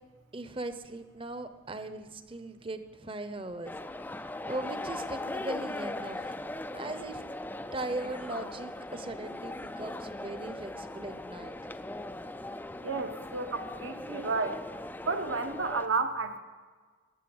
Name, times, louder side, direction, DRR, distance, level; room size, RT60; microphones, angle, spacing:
voice 1, 0.3-3.7 4.5-6.4 6.7-7.2 7.7-11.5, right 2 dB, 25° right, 10 dB, 0.8 m, -39 dB
sound 1, 3.6-15.9, left 1 dB, 10° left, 0.4 m, -39 dB
voice 2, 12.8-14.6 15.0-16.4, right 3 dB, 70° right, 7 dB, 1.2 m, -32 dB
15.0 x 10.5 x 7.9 m, 1.5 s
head